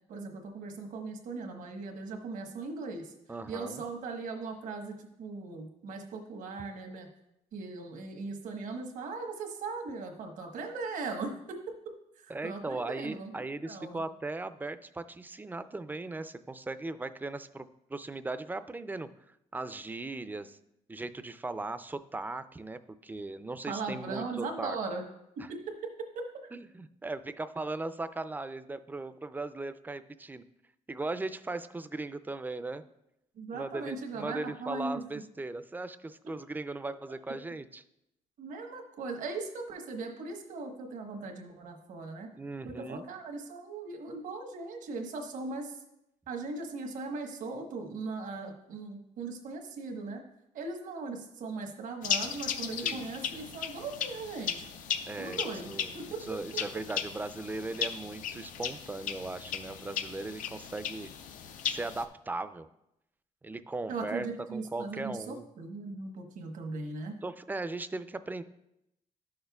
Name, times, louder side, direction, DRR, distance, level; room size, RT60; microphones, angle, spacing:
voice 1, 0.1-3.1 3.5-7.1 7.5-11.9 12.2-14.0 23.7-25.0 25.4-26.3 33.4-35.0 38.4-42.3 42.6-45.7 46.3-50.2 50.5-54.6 55.2-56.3 56.5-56.6 63.9-67.1, right 3 dB, 80° right, 3 dB, 1.2 m, -39 dB
voice 2, 3.3-3.8 12.3-19.1 19.5-20.6 20.9-24.8 25.4-25.5 26.5-30.4 30.9-32.8 33.5-37.8 42.4-43.1 52.8-53.1 55.1-56.0 56.3-61.1 61.6-62.7 63.4-65.4 67.2-68.4, right 2 dB, 15° right, 12 dB, 0.4 m, -38 dB
sound 1, 52.0-62.0, left 8 dB, 80° left, 0.6 m, -36 dB
11.0 x 6.6 x 2.3 m, 0.84 s
cardioid pair, 95°, 13 cm